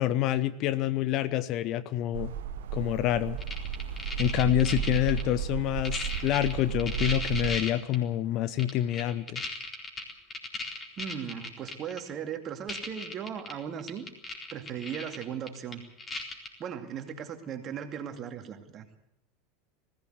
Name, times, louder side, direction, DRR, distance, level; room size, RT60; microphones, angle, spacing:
voice 1, 0.0-2.3 2.7-3.4 4.2-9.4, left 13 dB, 45° left, 15 dB, 0.9 m, -27 dB
sound 1, 2.1-7.6, right 9 dB, 60° right, 1.2 m, -34 dB
sound 2, 3.4-5.2 5.7-8.0 8.6-12.0 12.3-12.4 12.7-13.5 13.8-16.5 17.1-17.2, left 3 dB, 20° left, 4.2 m, -36 dB
voice 2, 11.0-14.0 14.5-15.8 16.6-18.9, right 8 dB, 35° right, 6 dB, 2.4 m, -37 dB
20.0 x 16.0 x 8.1 m, 0.82 s
figure-of-eight pair, 80°, 0 cm